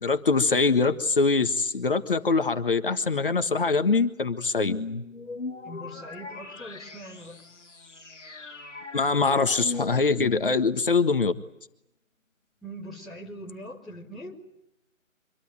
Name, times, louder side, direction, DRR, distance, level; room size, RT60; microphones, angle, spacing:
voice 1, 0.0-4.8 8.9-11.3, left 4 dB, 40° left, 9 dB, 1.5 m, -23 dB
sound 1, 4.6-10.9, left 3 dB, 60° left, 2.2 m, -38 dB
voice 2, 5.6-7.4 12.6-14.4, equal, ahead, -9 dB, 1.5 m, -41 dB
25.5 x 22.5 x 9.0 m, 0.83 s
figure-of-eight pair, 155°, 40 cm